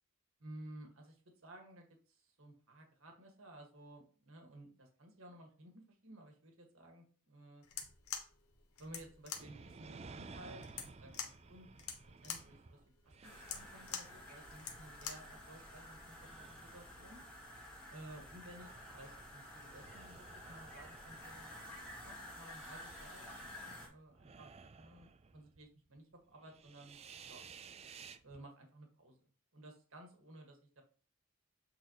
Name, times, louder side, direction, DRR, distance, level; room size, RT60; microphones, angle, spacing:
voice 1, 0.4-7.6 8.8-10.8 11.0-11.7 12.2-12.8 13.2-17.2 17.9-24.5 24.8-25.1 25.3-27.0 27.3-27.4 28.2-29.2 29.5-30.8, right 1 dB, 70° right, 2 dB, 1.6 m, -55 dB
sound 1, 7.6-15.3, left 7 dB, 80° left, 1.1 m, -46 dB
sound 2, 9.3-15.6 16.0-17.7 18.3-25.7 26.0-26.1 26.4-28.4, right 4 dB, 30° right, 0.3 m, -56 dB
sound 3, 13.2-23.9, left 1 dB, 5° left, 1.7 m, -52 dB
8.1 x 4.0 x 3.0 m, 0.40 s
head